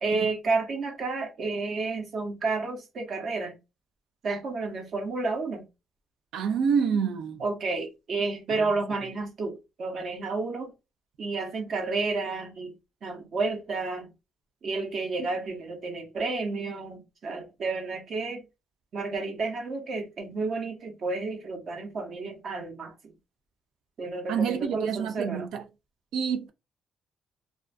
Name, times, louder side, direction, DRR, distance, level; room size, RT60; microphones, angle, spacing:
voice 1, 0.0-3.6 4.2-5.7 7.4-10.7 11.2-12.8 13.0-14.1 14.6-18.4 18.9-23.1 24.0-25.5, right 3 dB, 60° right, 0.8 m, -31 dB
voice 2, 6.3-7.4 8.5-8.6 24.3-25.6 26.1-26.5, right 6 dB, 85° right, 0.4 m, -27 dB
2.3 x 2.2 x 2.5 m
cardioid pair, 90°, 0 cm